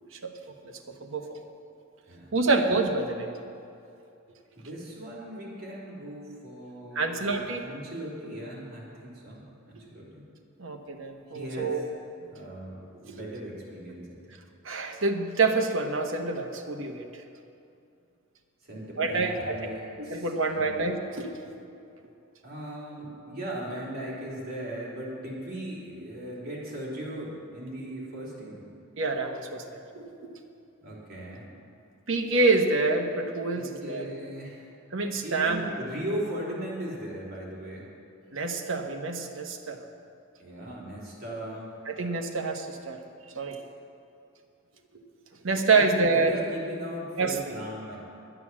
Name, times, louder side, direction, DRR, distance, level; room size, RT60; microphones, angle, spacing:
voice 1, 0.6-1.3 2.3-3.3 6.9-7.7 10.6-11.8 13.1-13.2 14.6-17.1 19.0-19.6 20.0-21.5 29.0-30.3 32.1-34.1 34.9-35.6 38.3-39.8 41.9-43.0 43.3-43.6 45.4-46.4 47.2-47.4, right 3 dB, 65° right, 4 dB, 1.1 m, -27 dB
voice 2, 4.6-10.3 11.3-11.8 12.2-14.2 18.6-20.7 22.4-28.7 30.8-31.5 33.5-34.7 35.2-37.9 40.4-41.7 45.7-48.0, right 1 dB, 45° right, -6 dB, 3.4 m, -38 dB
11.0 x 9.4 x 7.4 m, 2.6 s
head